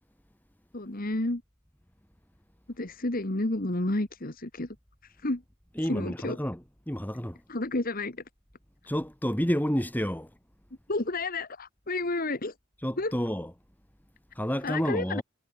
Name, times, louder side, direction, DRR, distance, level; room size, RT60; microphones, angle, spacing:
voice 1, 0.7-1.4 2.8-4.7 5.0-5.4 5.9-6.4 7.5-8.2 10.9-12.5 13.0-13.1 14.6-15.2, left 2 dB, 45° left, 1.7 m, -30 dB
voice 2, 5.8-7.4 8.9-10.3 12.8-13.5 14.3-15.2, equal, 10° left, 4.1 m, -30 dB
head